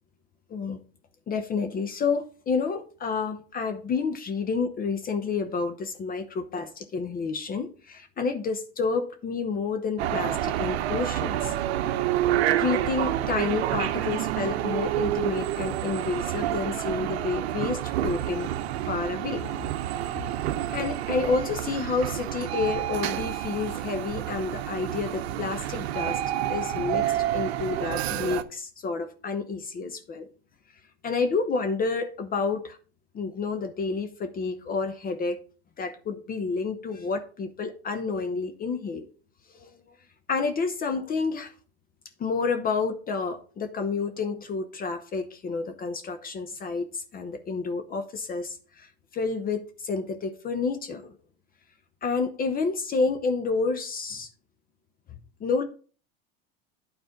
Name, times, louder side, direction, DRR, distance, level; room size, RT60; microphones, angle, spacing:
voice 1, 0.5-0.8 1.3-11.5 12.5-18.5 18.9-19.4 20.7-26.2 26.5-27.1 27.3-30.3 31.0-32.8 33.1-35.4 35.8-39.1 39.5-39.7 40.3-41.5 42.2-51.1 52.0-54.3 55.4-55.6, left 4 dB, 30° left, 0.9 m, -29 dB
sound 1, 10.0-28.4, right 12 dB, 75° right, 0.8 m, -29 dB
9.3 x 4.3 x 5.1 m
supercardioid pair, 110°, 32 cm